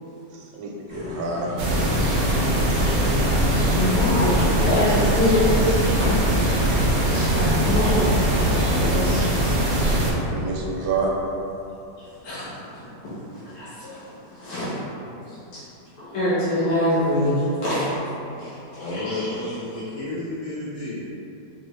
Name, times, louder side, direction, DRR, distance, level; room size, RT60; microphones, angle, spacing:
voice 1, 0.3-1.6 2.7-2.9 10.3-11.1, right 4 dB, 85° right, -1 dB, 1.3 m, -28 dB
sound 1, 0.9-10.7 11.1-11.2, equal, 55° left, 1.1 m, -33 dB
sound 2, 1.6-10.1, right 1 dB, 65° right, 0.7 m, -21 dB
voice 2, 3.7-5.8 7.1-9.5 12.0-14.7 15.3-15.6 16.0-17.9 18.4-19.3, left 1 dB, 70° left, -12 dB, 1.5 m, -25 dB
voice 3, 18.7-21.0, left 2 dB, 90° left, -7 dB, 0.6 m, -31 dB
4.7 x 2.4 x 3.1 m, 2.8 s
omnidirectional pair, 1.9 m